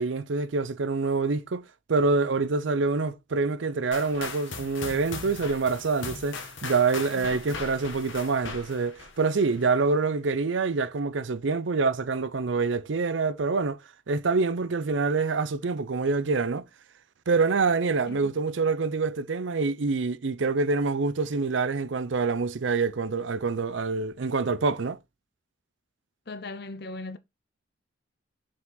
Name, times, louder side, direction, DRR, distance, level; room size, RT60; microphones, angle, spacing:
voice 1, 0.0-13.8 14.1-16.6 17.3-25.0, right 4 dB, 75° right, 0.6 m, -26 dB
sound 1, 3.9-9.8, left 4 dB, 85° left, 1.5 m, -39 dB
voice 2, 7.1-7.6 18.0-18.2 26.3-27.2, left 3 dB, 55° left, 0.8 m, -39 dB
5.8 x 4.9 x 3.9 m
head